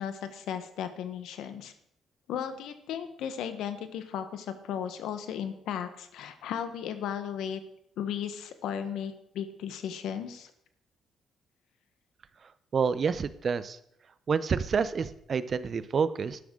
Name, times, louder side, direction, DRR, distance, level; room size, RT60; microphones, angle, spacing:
voice 1, 0.0-1.7 2.3-7.6 8.0-10.5, left 8 dB, 80° left, 10 dB, 1.3 m, -35 dB
voice 2, 12.7-13.8 14.3-16.4, right 6 dB, 50° right, 15 dB, 0.7 m, -28 dB
12.5 x 11.0 x 3.9 m, 0.73 s
supercardioid pair, 70°, 0 cm